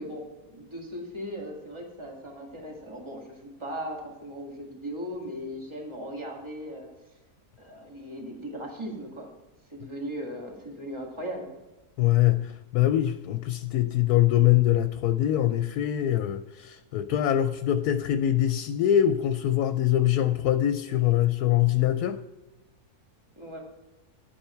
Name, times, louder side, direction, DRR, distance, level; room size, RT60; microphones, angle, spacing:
voice 1, 0.0-6.9 7.6-9.3 9.7-11.5 23.4-23.6, equal, 20° right, 2.2 m, -38 dB
voice 2, 12.0-22.2, left 12 dB, 85° left, 1.1 m, -23 dB
11.5 x 8.6 x 4.5 m
omnidirectional pair, 1.6 m